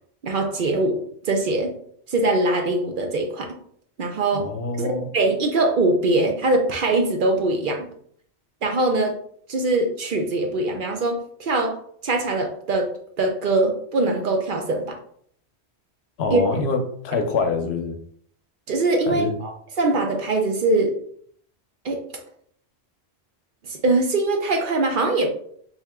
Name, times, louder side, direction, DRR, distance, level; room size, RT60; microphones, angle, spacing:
voice 1, 0.2-1.7 2.1-3.6 4.0-4.5 4.8-7.9 8.6-9.2 9.5-11.8 12.0-12.9 13.2-15.0 16.3-16.4 18.7-21.0 21.8-22.2 23.6-25.3, right 2 dB, 55° right, 3 dB, 0.7 m, -22 dB
voice 2, 4.3-5.1 16.2-18.0 19.1-19.4, left 3 dB, 75° left, 5 dB, 0.9 m, -25 dB
3.6 x 2.8 x 3.5 m, 0.63 s
omnidirectional pair, 1.1 m